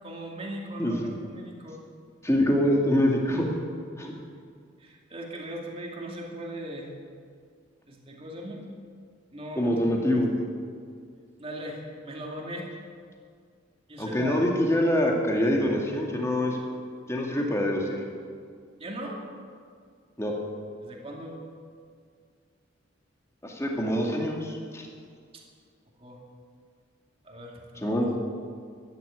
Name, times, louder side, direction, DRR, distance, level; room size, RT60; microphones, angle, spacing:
voice 1, 0.0-1.8 4.8-6.9 7.9-8.6 9.3-9.7 11.4-12.7 13.9-14.4 18.8-19.2 20.8-21.4 25.3-25.4 26.0-26.2 27.2-28.0, right 1 dB, 30° right, -1 dB, 2.4 m, -39 dB
voice 2, 2.2-3.5 4.0-4.1 9.6-10.4 14.0-16.6 17.1-18.0 20.2-20.3 23.4-24.9 27.8-28.1, left 1 dB, 15° left, 0 dB, 2.2 m, -25 dB
13.5 x 10.5 x 9.7 m, 2.1 s
head